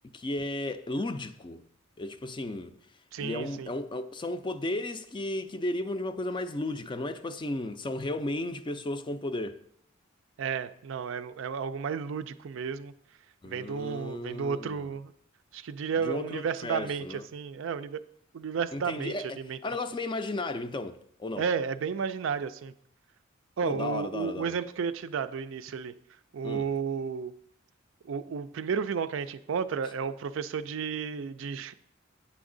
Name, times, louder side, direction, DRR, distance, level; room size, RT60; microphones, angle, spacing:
voice 1, 0.1-1.6 2.0-2.7 3.2-9.6 13.4-14.9 16.0-17.3 18.7-21.5 23.6-24.5 26.4-26.7, left 2 dB, 25° left, 0.4 m, -34 dB
voice 2, 3.1-3.7 10.4-12.9 13.5-15.1 15.5-18.0 18.3-19.6 21.4-22.7 23.6-25.9 26.3-27.3 28.1-31.7, right 6 dB, 65° right, 0.4 m, -32 dB
8.6 x 6.2 x 3.8 m
head